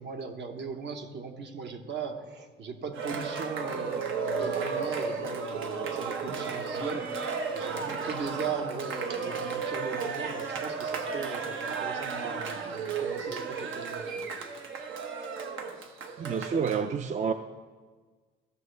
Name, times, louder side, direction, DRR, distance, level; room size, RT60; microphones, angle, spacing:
voice 1, 0.0-7.1 7.5-14.3, right 5 dB, 65° right, 5 dB, 1.2 m, -38 dB
Cheering, 2.9-16.8, right 5 dB, 80° right, 1.1 m, -34 dB
voice 2, 16.2-17.3, right 6 dB, 35° right, 9 dB, 0.4 m, -29 dB
15.0 x 6.8 x 3.3 m, 1.4 s
cardioid pair, 90°, 20 cm